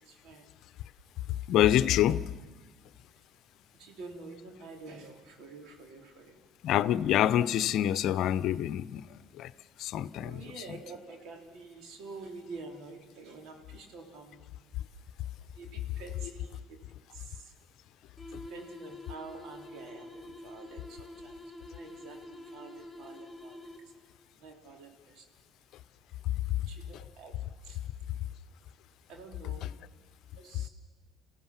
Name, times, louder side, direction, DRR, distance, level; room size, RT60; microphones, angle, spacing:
voice 1, 0.1-0.4 3.8-6.4 10.2-14.5 15.6-16.8 17.1-17.5 18.5-23.6 24.4-24.9 25.2-25.3 26.7-27.3 27.6-27.8 29.1-29.7 30.4-30.7, right 3 dB, 70° right, 3.5 m, -48 dB
voice 2, 1.5-2.3 6.6-9.5 9.8-10.8 16.2-16.3 26.6-26.7 26.9-27.0 29.6-29.7, left 11 dB, 70° left, 0.7 m, -27 dB
sound 1, 18.2-24.1, left 1 dB, ahead, 5.7 m, -47 dB
28.0 x 16.0 x 7.4 m
supercardioid pair, 75°, 0 cm